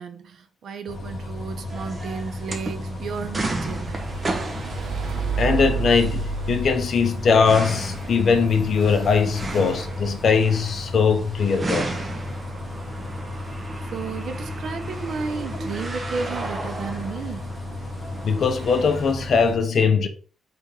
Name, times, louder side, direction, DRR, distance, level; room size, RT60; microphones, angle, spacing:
voice 1, 0.0-3.9 13.9-17.5, right 5 dB, 60° right, 0.6 m, -33 dB
Bus, 0.9-19.6, left 1 dB, 30° left, 1.1 m, -34 dB
sound 1, 1.7-19.1, right 2 dB, 25° right, 0.7 m, -35 dB
sound 2, 3.2-10.1, right 5 dB, 80° right, 1.0 m, -32 dB
voice 2, 5.4-11.9 18.2-20.1, left 5 dB, 50° left, 0.6 m, -20 dB
3.4 x 3.4 x 4.3 m
wide cardioid pair, 155°, 0 cm